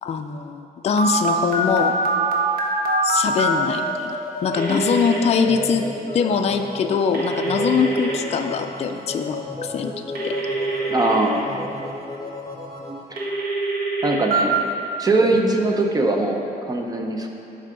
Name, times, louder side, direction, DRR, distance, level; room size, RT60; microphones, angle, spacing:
voice 1, 0.0-1.9 3.0-5.9 6.1-9.9 10.2-10.4 15.3-15.5, left 6 dB, 40° left, 5 dB, 0.4 m, -23 dB
Telephone, 1.0-3.5 4.5-5.2 7.1-8.2 10.2-11.2 13.2-14.4, right 2 dB, 65° right, 1.3 m, -24 dB
sound 1, 3.3-13.0, left 2 dB, 20° left, 1.3 m, -33 dB
voice 2, 10.9-11.5 13.1-13.2 14.0-14.6 15.0-17.3, right 2 dB, 25° right, 3 dB, 0.7 m, -21 dB
11.0 x 5.5 x 3.8 m, 2.9 s
cardioid pair, 140°, 17 cm